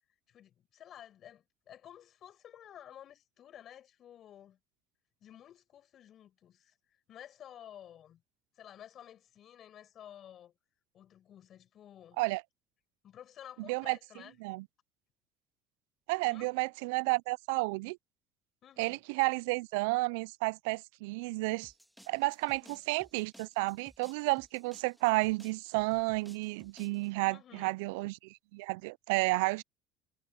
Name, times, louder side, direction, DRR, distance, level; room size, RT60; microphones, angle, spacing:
voice 1, 0.3-4.6 5.2-8.2 8.5-10.6 10.9-12.2 13.0-14.4 16.3-16.6 18.6-19.0 22.4-22.8 27.3-27.7, left 10 dB, 55° left, 6.1 m, -53 dB
voice 2, 16.1-18.0 18.8-21.7 22.1-29.6, right 25 dB, 85° right, 0.3 m, -31 dB
sound 1, 21.6-27.1, equal, ahead, 1.7 m, -59 dB
supercardioid pair, 85°, 0 cm